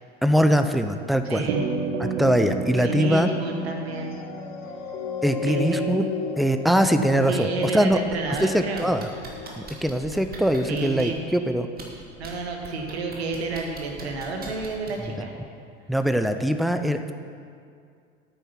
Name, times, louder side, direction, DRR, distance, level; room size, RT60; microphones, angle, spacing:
voice 1, 0.2-1.5 2.0-3.3 5.2-6.1 6.4-8.0 8.4-9.1 9.6-11.7 15.1-15.2 15.9-17.1, equal, ahead, 8 dB, 0.4 m, -22 dB
voice 2, 1.2-1.7 2.8-4.2 5.4-5.8 7.3-8.9 10.6-11.2 12.2-15.3, right 3 dB, 70° right, 2 dB, 1.6 m, -30 dB
sound 1, 1.5-6.1, right 4 dB, 50° right, 1.0 m, -31 dB
sound 2, 4.0-10.7 11.3-11.4, left 5 dB, 60° left, 1.0 m, -35 dB
sound 3, 7.9-8.4 8.8-11.2 11.7-12.3 12.6-15.1 16.1-16.2, right 4 dB, 25° right, 2.0 m, -41 dB
9.0 x 8.8 x 5.9 m, 2.3 s
figure-of-eight pair, 70°, 33 cm